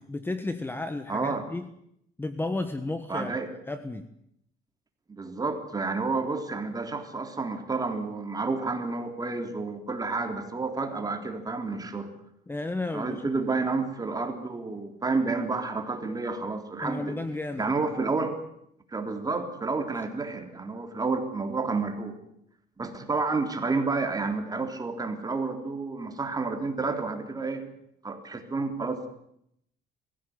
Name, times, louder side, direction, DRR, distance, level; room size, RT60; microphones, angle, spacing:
voice 1, 0.1-1.7 2.2-3.3 3.7-4.1 12.5-13.2 16.8-17.7 19.9-20.0, left 2 dB, 10° left, 10 dB, 1.3 m, -33 dB
voice 2, 1.1-1.5 3.1-3.5 5.1-12.1 12.9-17.2 17.6-18.4 18.9-22.2 22.8-27.6 28.0-29.1, right 3 dB, 20° right, 5 dB, 3.5 m, -30 dB
21.5 x 16.0 x 9.6 m, 0.75 s
cardioid pair, 110°, 17 cm